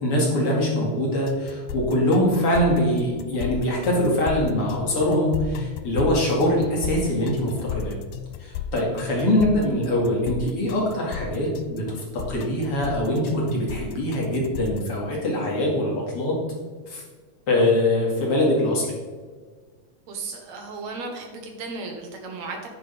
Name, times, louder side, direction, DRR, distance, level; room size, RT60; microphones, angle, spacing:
voice 1, 0.0-8.0 8.4-16.4 16.9-17.0 17.5-18.9, left 1 dB, 50° left, -3 dB, 2.9 m, -23 dB
sound 1, 1.3-14.9, left 7 dB, 80° left, 1.9 m, -34 dB
voice 2, 20.1-22.7, right 3 dB, 65° right, 3 dB, 2.7 m, -35 dB
10.0 x 9.8 x 3.5 m, 1.5 s
omnidirectional pair, 3.5 m